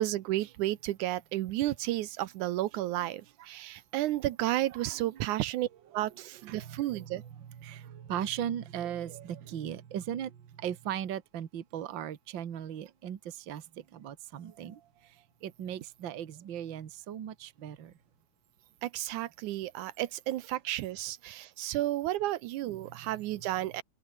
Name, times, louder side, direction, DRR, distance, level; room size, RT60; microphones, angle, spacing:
voice 1, 0.0-5.7 5.9-7.2 18.8-23.8, right 15 dB, 80° right, 2.3 m, -32 dB
voice 2, 6.5-7.3 7.6-10.3 10.6-13.6 13.9-14.8 15.4-17.9 22.9-23.0, right 10 dB, 45° right, 1.8 m, -38 dB
omnidirectional pair, 3.5 m